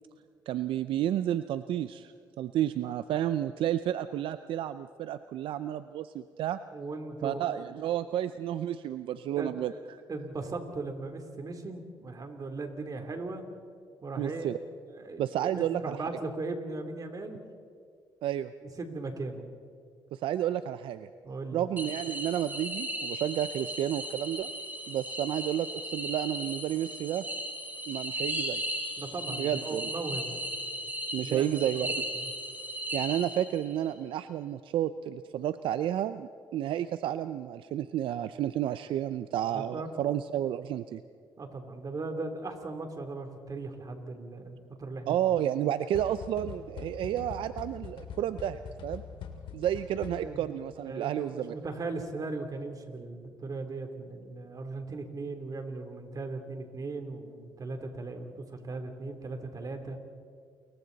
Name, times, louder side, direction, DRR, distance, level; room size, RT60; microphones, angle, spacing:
voice 1, 0.5-6.6 7.2-10.0 14.2-14.6 15.2-16.0 18.2-18.5 20.1-21.1 21.5-24.5 24.9-27.2 27.9-28.6 29.3-29.9 31.1-31.9 32.9-41.0 45.1-49.0 49.5-51.5, right 11 dB, 80° right, 12 dB, 0.5 m, -31 dB
voice 2, 6.7-7.5 9.4-9.8 10.1-13.5 14.0-14.6 14.9-17.4 18.8-19.5 21.2-21.6 29.0-30.4 31.2-32.3 39.5-40.0 41.4-45.1 50.2-50.5 50.8-60.0, right 3 dB, 45° right, 5 dB, 3.2 m, -38 dB
sound 1, 21.8-33.7, equal, 20° right, 6.7 m, -36 dB
sound 2, 45.9-50.5, left 7 dB, 80° left, 2.6 m, -43 dB
29.0 x 22.5 x 4.1 m, 2.2 s
cardioid pair, 75°, 9 cm